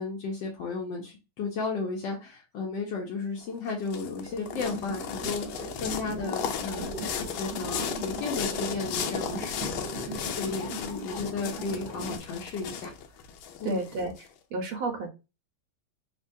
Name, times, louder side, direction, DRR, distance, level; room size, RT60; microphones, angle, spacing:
voice 1, 0.0-6.9 7.3-12.9 13.6-13.8, left 4 dB, 70° left, -1 dB, 1.3 m, -34 dB
sound 1, 3.4-14.2, left 8 dB, 90° left, 1.4 m, -35 dB
sound 2, 4.2-12.2, right 1 dB, 45° right, 0.7 m, -38 dB
voice 2, 13.6-14.1 14.5-15.1, right 3 dB, 85° right, 2 dB, 1.6 m, -31 dB
3.7 x 2.2 x 2.6 m, 0.27 s
omnidirectional pair, 2.2 m